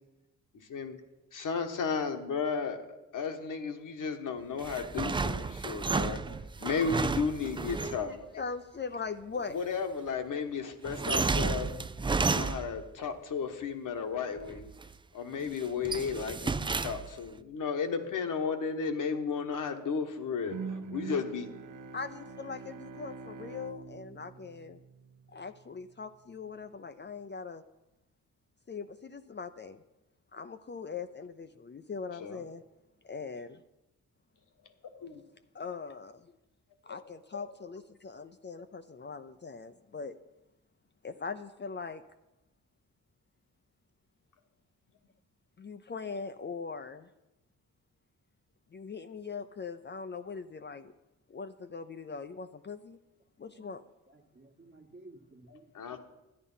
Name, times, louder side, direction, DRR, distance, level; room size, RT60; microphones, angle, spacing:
voice 1, 1.3-2.8 3.1-6.2 6.6-8.2 9.5-11.7 12.3-14.7 15.1-20.5 20.9-21.5 32.2-32.4 34.9-35.2 55.5-56.0, left 5 dB, 65° left, 1.3 m, -34 dB
sound 1, 4.6-8.1 10.8-12.9 14.4-14.9 15.4-17.3, right 4 dB, 15° right, 0.4 m, -32 dB
voice 2, 8.4-9.6 21.9-24.8 25.3-27.6 28.7-29.8 30.3-32.6 33.0-33.6 35.5-36.3 36.8-40.2 41.0-42.0 45.6-47.1 48.7-50.9 51.3-53.0 53.4-53.8, left 5 dB, 30° left, 0.6 m, -41 dB
Bowed string instrument, 20.5-25.5, right 5 dB, 70° right, 0.8 m, -44 dB
voice 3, 54.4-55.5, right 1 dB, 35° right, 1.4 m, -52 dB
11.5 x 9.7 x 5.5 m
cardioid pair, 60°, 33 cm